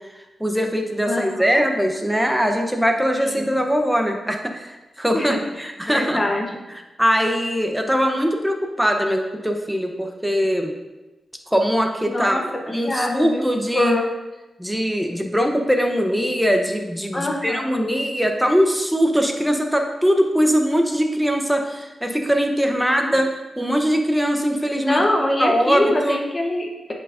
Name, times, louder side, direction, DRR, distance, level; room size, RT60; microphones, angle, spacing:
voice 1, 0.1-6.2 7.0-10.7 11.5-12.4 12.7-13.9 14.6-25.0 25.4-26.2, equal, 5° right, 4 dB, 0.7 m, -21 dB
voice 2, 1.0-1.6 3.2-3.6 5.1-6.5 12.1-12.4 12.8-13.4 13.7-14.1 17.1-17.9 22.7-23.2 24.8-26.9, left 1 dB, 25° left, 1 dB, 0.9 m, -24 dB
8.7 x 4.8 x 2.5 m, 1.1 s
wide cardioid pair, 105°, 0 cm